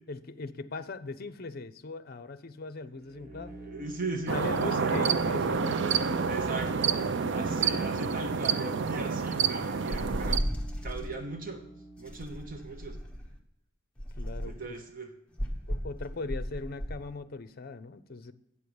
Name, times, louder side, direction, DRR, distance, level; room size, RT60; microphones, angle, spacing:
voice 1, 0.1-3.5 4.1-5.6 14.2-14.8 15.7-18.3, left 3 dB, 50° left, 12 dB, 0.6 m, -39 dB
sound 1, 2.9-12.8, right 1 dB, 15° right, 2.1 m, -51 dB
voice 2, 3.1-5.0 6.0-6.9 7.3-10.4 10.8-11.6 12.0-13.0 14.4-15.1, right 3 dB, 45° right, 5 dB, 1.0 m, -39 dB
sound 2, 4.3-10.4, right 5 dB, 60° right, 0.5 m, -28 dB
sound 3, 9.9-11.1 12.1-13.3 14.0-14.7 15.4-17.0, equal, 5° left, 1.1 m, -34 dB
8.5 x 6.4 x 7.0 m, 0.84 s
head